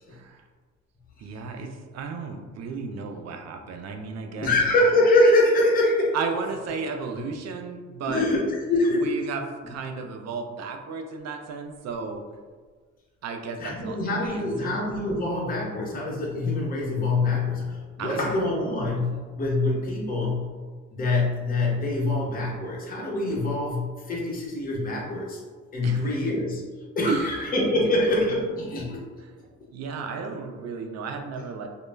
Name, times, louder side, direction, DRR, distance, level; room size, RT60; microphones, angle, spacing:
voice 1, 0.1-0.4 1.2-4.5 6.1-8.2 8.9-12.2 13.2-14.8 18.0-18.3 25.8-26.1 27.1-27.3 27.8-27.9 29.2-29.3 29.7-31.7, right 5 dB, 60° right, 4 dB, 0.5 m, -34 dB
voice 2, 4.4-6.2 8.1-9.1 13.6-20.5 20.9-25.4 25.7-26.6 27.0-29.0, left 2 dB, 30° left, -4 dB, 0.7 m, -24 dB
2.2 x 2.1 x 3.2 m, 1.5 s
cardioid pair, 90°, 30 cm